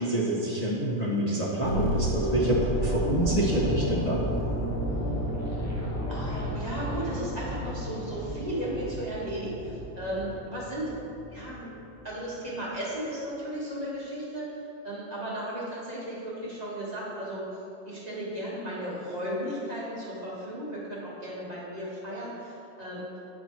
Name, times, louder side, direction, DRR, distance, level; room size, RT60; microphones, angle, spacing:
voice 1, 0.0-4.3, right 1 dB, 55° left, -6 dB, 0.4 m, -27 dB
sound 1, 1.6-11.6 11.9-12.1, equal, 15° left, 0.7 m, -32 dB
voice 2, 6.1-11.0 11.3-11.7 12.0-17.4 17.8-23.1, right 1 dB, 25° right, -8 dB, 1.3 m, -35 dB
9.0 x 4.2 x 4.4 m, 2.8 s
omnidirectional pair, 2.0 m